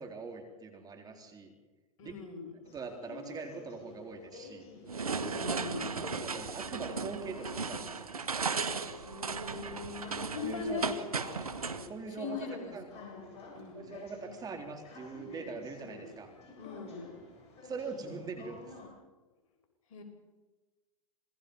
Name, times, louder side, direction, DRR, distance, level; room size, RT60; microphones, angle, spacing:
voice 1, 0.0-1.5 2.0-2.1 2.7-4.7 6.2-8.1 10.0-11.1 11.3-11.5 11.9-12.5 12.7-12.9 13.7-16.3 17.6-18.6, right 4 dB, 20° right, 4 dB, 4.1 m, -42 dB
voice 2, 2.0-2.6 5.1-6.1 9.1-10.9 12.1-13.2 13.5-14.0 16.6-17.1 19.9-20.0, left 5 dB, 60° left, 4 dB, 6.2 m, -41 dB
sound 1, 2.6-18.9, left 3 dB, 35° left, 7.7 m, -50 dB
sound 2, 4.9-11.9, right 4 dB, 90° right, 1.6 m, -36 dB
27.5 x 20.0 x 5.6 m, 1.2 s
hypercardioid pair, 105°, 18 cm